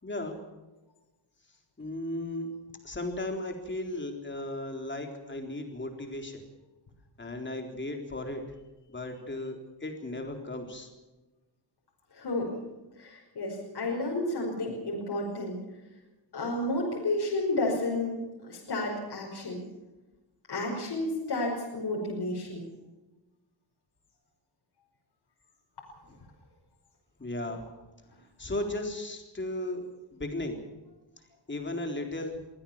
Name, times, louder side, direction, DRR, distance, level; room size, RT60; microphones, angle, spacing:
voice 1, 0.0-0.4 1.8-2.5 2.8-6.4 7.2-8.4 8.9-10.9 27.2-27.6 28.4-30.6 31.5-32.4, left 1 dB, 25° left, 3 dB, 3.9 m, -35 dB
voice 2, 12.1-12.5 13.0-15.6 16.3-19.6 20.5-22.7, left 2 dB, 60° left, -2 dB, 5.7 m, -31 dB
23.0 x 16.5 x 7.4 m, 1.1 s
wide cardioid pair, 130°, 45 cm